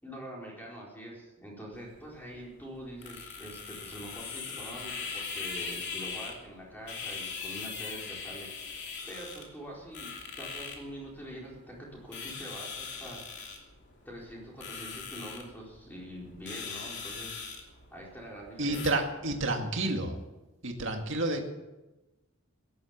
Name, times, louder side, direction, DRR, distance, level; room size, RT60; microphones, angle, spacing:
voice 1, 0.0-13.3 14.0-17.5 17.9-19.0, equal, 10° left, -3 dB, 4.3 m, -45 dB
sound 1, 1.7-18.9, left 5 dB, 50° left, 2.9 m, -41 dB
voice 2, 18.6-20.2 20.6-21.4, right 2 dB, 55° right, 4 dB, 2.1 m, -30 dB
17.0 x 11.5 x 7.3 m, 1.1 s
head